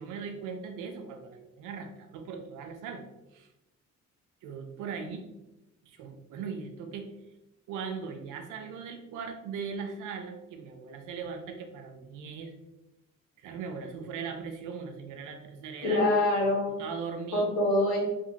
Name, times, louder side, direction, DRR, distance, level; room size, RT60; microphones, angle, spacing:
voice 1, 0.0-3.0 3.3-3.5 4.4-5.3 5.9-7.1 7.7-12.5 13.4-16.0 16.8-17.5, right 6 dB, 90° right, 5 dB, 0.5 m, -39 dB
voice 2, 15.8-16.8 17.3-18.0, left 1 dB, 70° left, -5 dB, 1.2 m, -25 dB
2.5 x 2.4 x 2.8 m, 0.96 s
cardioid pair, 90°, 30 cm